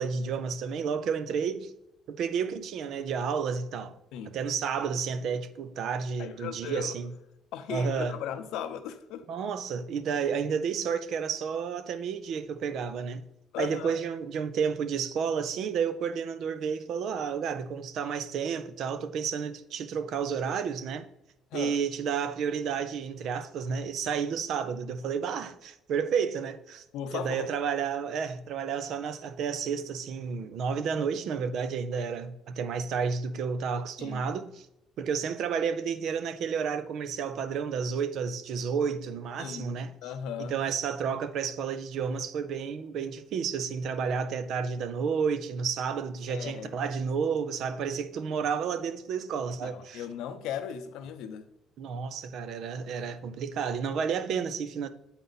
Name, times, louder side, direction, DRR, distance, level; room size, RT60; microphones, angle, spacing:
voice 1, 0.0-1.7 2.1-4.0 4.3-7.1 7.7-8.2 9.3-13.2 13.6-21.1 21.5-26.8 27.1-34.7 35.0-39.9 40.4-50.0 51.8-54.9, right 6 dB, 55° right, 0.5 m, -31 dB
voice 2, 6.2-6.9 7.5-9.3 13.5-14.0 21.5-21.8 26.9-27.5 34.0-34.2 39.4-39.7 40.0-40.5 46.3-46.8 49.6-51.5, left 9 dB, 80° left, 0.6 m, -37 dB
8.0 x 4.1 x 4.0 m
cardioid pair, 160°, 0 cm